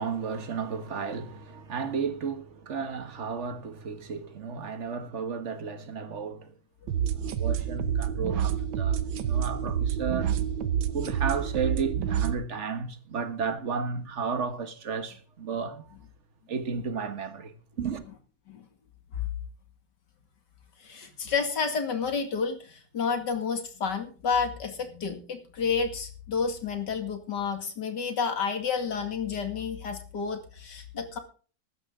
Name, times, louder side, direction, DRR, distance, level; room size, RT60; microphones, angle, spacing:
voice 1, 0.0-6.5 7.2-10.3 10.9-15.9 16.5-18.0, right 5 dB, 40° right, 1.4 m, -33 dB
sound 1, 6.9-12.3, right 8 dB, 80° right, 1.6 m, -28 dB
voice 2, 20.8-31.2, left 5 dB, 60° left, 2.8 m, -30 dB
14.5 x 13.0 x 3.7 m
omnidirectional pair, 2.1 m